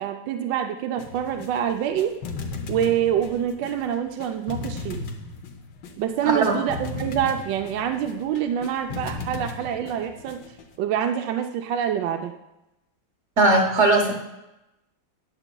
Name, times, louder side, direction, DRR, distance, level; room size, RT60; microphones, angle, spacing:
voice 1, 0.0-2.1 2.7-5.0 6.0-10.4 10.8-12.3, right 9 dB, 75° right, 5 dB, 1.3 m, -26 dB
sound 1, 1.0-10.8, left 4 dB, 80° left, 1.6 m, -36 dB
voice 2, 6.2-6.6 13.4-14.2, right 2 dB, 45° right, 2 dB, 1.2 m, -19 dB
19.5 x 7.1 x 2.3 m, 0.93 s
omnidirectional pair, 2.0 m